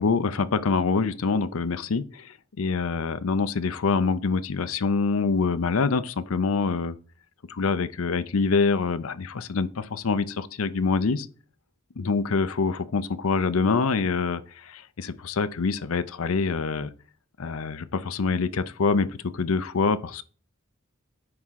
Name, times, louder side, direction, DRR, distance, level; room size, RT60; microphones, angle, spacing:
voice 1, 0.0-6.9 7.5-11.3 12.0-16.9 17.4-20.2, left 4 dB, 80° left, 0.6 m, -25 dB
9.6 x 3.7 x 5.7 m
head